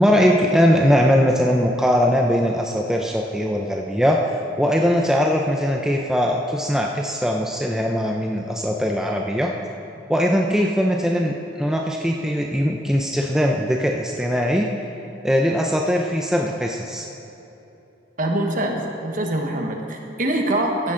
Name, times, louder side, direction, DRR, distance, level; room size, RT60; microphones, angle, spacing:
voice 1, 0.0-4.3 4.6-9.5 10.1-14.7 15.2-17.1, equal, 5° right, 0 dB, 0.5 m, -20 dB
voice 2, 18.2-20.9, right 1 dB, 45° right, 2 dB, 1.2 m, -24 dB
14.5 x 10.0 x 3.8 m, 3.0 s
head